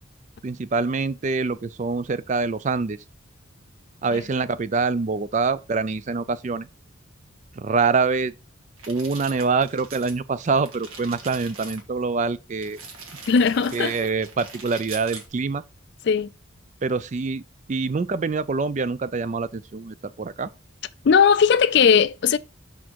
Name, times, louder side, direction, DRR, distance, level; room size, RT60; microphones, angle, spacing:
voice 1, 0.4-3.0 4.0-6.7 7.6-8.3 8.9-12.8 13.7-15.6 16.8-17.4 17.7-20.5, right 4 dB, 35° right, 0.3 m, -25 dB
sound 1, 8.8-10.2 10.5-11.8 12.6-15.3, right 4 dB, 85° right, 1.6 m, -42 dB
voice 2, 13.2-13.9 16.0-16.3 21.0-22.4, left 6 dB, 55° left, 0.4 m, -18 dB
5.6 x 4.4 x 4.5 m
head